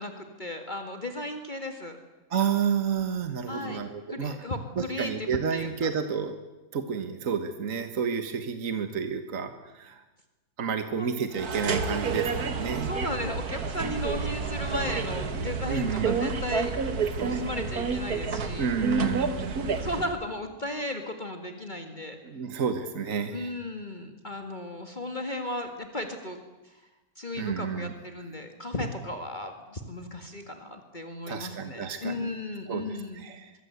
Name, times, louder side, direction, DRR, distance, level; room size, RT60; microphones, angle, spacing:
voice 1, 0.0-2.0 3.5-3.8 4.1-5.9 11.0-11.1 12.8-16.7 17.2-18.7 19.8-22.2 23.3-26.4 26.6-26.7 27.2-33.2, left 1 dB, 30° left, 5 dB, 2.1 m, -35 dB
voice 2, 2.3-4.4 4.8-6.4 6.7-10.0 10.6-12.9 15.7-16.2 17.1-17.5 18.6-19.7 22.2-23.5 27.4-27.9 31.3-32.3 32.7-33.5, right 6 dB, 60° right, 8 dB, 1.8 m, -30 dB
sound 1, 11.3-20.2, right 5 dB, 85° right, 2.1 m, -30 dB
24.0 x 23.5 x 8.1 m, 1.1 s
omnidirectional pair, 1.6 m